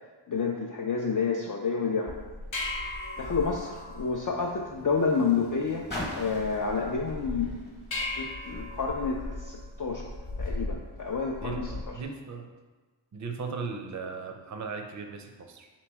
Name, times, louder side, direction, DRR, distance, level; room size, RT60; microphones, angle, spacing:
voice 1, 0.3-2.2 3.2-5.8 6.1-7.7 8.2-10.0 10.4-11.6, left 5 dB, 45° left, -1 dB, 0.4 m, -29 dB
sound 1, 2.1-12.0, left 2 dB, 70° left, 1.0 m, -38 dB
Car, 2.3-8.9 9.7-9.8, left 1 dB, 20° left, 1.0 m, -44 dB
voice 2, 11.4-12.5 13.1-15.7, right 4 dB, 40° right, 4 dB, 0.5 m, -37 dB
4.1 x 3.0 x 3.4 m, 1.3 s
wide cardioid pair, 65°, 49 cm